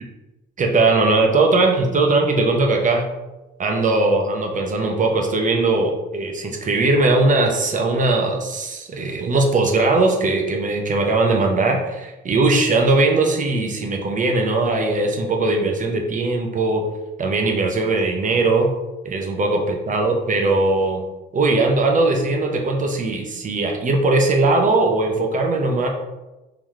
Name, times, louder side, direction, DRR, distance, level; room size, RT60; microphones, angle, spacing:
voice 1, 0.6-3.0 3.6-16.8 17.2-18.7 19.0-21.0 21.3-25.9, right 2 dB, 40° right, 2 dB, 0.7 m, -19 dB
3.9 x 2.9 x 3.1 m, 1.1 s
cardioid pair, 90°, 20 cm